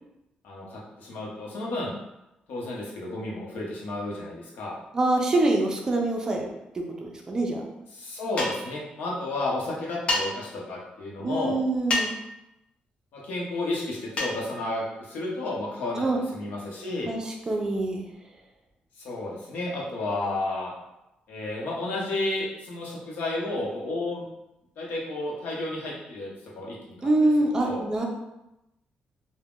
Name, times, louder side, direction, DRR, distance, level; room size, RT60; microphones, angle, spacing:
voice 1, 0.4-1.9 2.5-4.7 7.9-11.6 13.1-16.0 16.3-17.1 19.0-20.7 21.3-24.2 24.8-26.3 26.5-27.8, left 2 dB, 85° left, -4 dB, 0.8 m, -32 dB
voice 2, 4.9-6.5 6.7-7.6 11.2-12.1 16.0-16.2 17.1-18.0 27.0-28.1, right 2 dB, 20° right, 1 dB, 0.4 m, -25 dB
sound 1, 8.4-8.7 10.1-10.2 11.9-12.2 14.2-14.4, left 2 dB, 40° left, 0.4 m, -26 dB
2.4 x 2.1 x 3.5 m, 0.91 s
wide cardioid pair, 170°, 3 cm